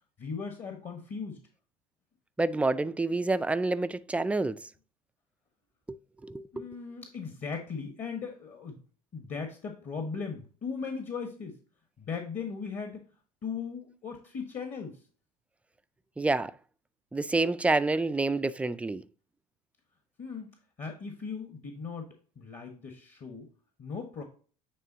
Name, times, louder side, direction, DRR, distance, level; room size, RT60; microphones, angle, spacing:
voice 1, 0.2-1.4 6.5-8.8 9.1-11.6 12.0-13.1 13.4-15.0 20.2-20.5 20.8-23.5 23.8-24.2, left 5 dB, 40° left, 1.4 m, -38 dB
voice 2, 2.4-4.6 5.9-6.0 6.2-6.7 16.2-16.5 17.1-19.0, right 3 dB, 5° right, 0.3 m, -28 dB
9.3 x 3.6 x 2.8 m
hypercardioid pair, 85°, 19 cm